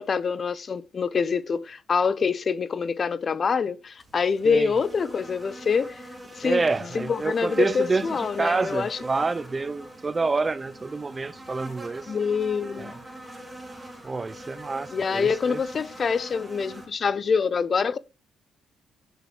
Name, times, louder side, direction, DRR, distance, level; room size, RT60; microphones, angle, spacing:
voice 1, 0.0-6.0 6.4-6.6 6.9-9.0 12.1-12.9 14.9-18.0, left 5 dB, 45° left, 0.6 m, -25 dB
sound 1, 4.0-16.9, right 1 dB, 10° right, 3.6 m, -43 dB
voice 2, 6.4-12.1 12.8-12.9 14.0-15.6, right 3 dB, 25° right, 0.5 m, -28 dB
10.0 x 5.9 x 3.2 m
cardioid pair, 90°, 0 cm